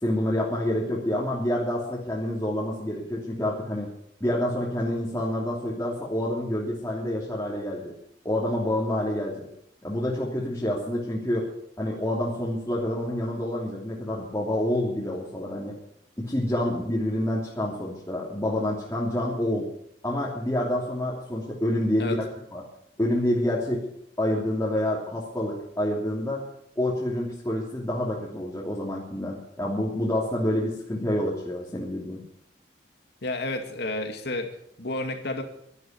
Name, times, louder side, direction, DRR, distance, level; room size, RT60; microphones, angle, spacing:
voice 1, 0.0-3.9 4.2-7.9 8.2-9.5 9.8-11.5 11.8-15.7 16.2-19.6 20.0-22.2 22.5-22.6 23.0-23.8 24.2-26.4 26.8-32.2, left 1 dB, 15° left, -5 dB, 2.9 m, -27 dB
voice 2, 33.2-34.5 34.8-35.4, left 2 dB, 65° left, 6 dB, 2.3 m, -30 dB
12.0 x 11.5 x 9.2 m, 0.72 s
head